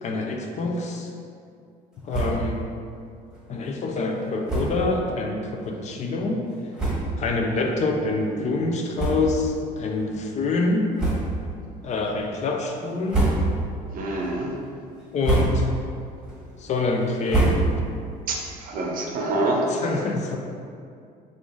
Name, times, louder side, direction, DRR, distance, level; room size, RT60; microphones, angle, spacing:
voice 1, 0.0-1.1 2.0-2.6 3.5-6.4 7.2-10.9 11.8-13.4 15.1-15.7 16.6-17.7 19.7-20.4, left 3 dB, 45° left, 2 dB, 0.4 m, -26 dB
sound 1, 2.1-2.6 2.9-3.0 3.3-3.4 4.4-4.9 5.6-5.7 6.4-6.5 6.7-7.3 7.8-8.0 8.9-9.6 9.9-10.1 10.9-11.5 12.0-12.4 12.9-13.8 14.2-14.6 15.0-15.8 16.2-18.0, right 2 dB, 5° right, 1.2 m, -26 dB
voice 2, 13.9-14.5 18.3-19.7, right 2 dB, 55° right, 0 dB, 0.6 m, -26 dB
3.4 x 2.5 x 3.6 m, 2.4 s
cardioid pair, 100°, 17 cm